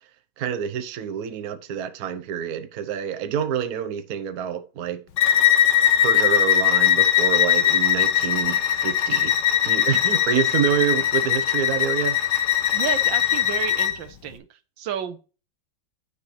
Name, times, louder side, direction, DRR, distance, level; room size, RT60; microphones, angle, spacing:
voice 1, 0.4-5.0 6.0-9.3 9.6-12.2, right 9 dB, 60° right, 1.2 m, -27 dB
Bowed string instrument, 5.2-14.0, left 10 dB, 65° left, 1.5 m, -20 dB
voice 2, 12.7-14.4 14.8-15.2, right 9 dB, 75° right, 1.5 m, -31 dB
9.5 x 6.8 x 3.2 m
omnidirectional pair, 2.1 m